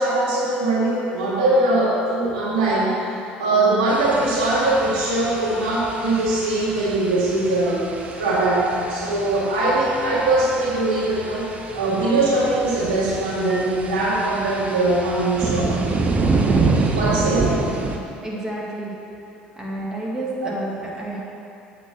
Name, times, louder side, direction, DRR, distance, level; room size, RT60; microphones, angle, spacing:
voice 1, 0.0-2.9 3.4-7.8 8.2-15.9 16.8-17.6, right 2 dB, 75° right, -7 dB, 1.9 m, -21 dB
sound 1, 3.9-18.0, right 4 dB, 30° right, 0.8 m, -27 dB
voice 2, 17.0-17.4 18.2-18.9 19.6-21.2, right 1 dB, 15° right, -5 dB, 1.9 m, -30 dB
7.9 x 4.2 x 6.2 m, 2.7 s
hypercardioid pair, 60°, 5 cm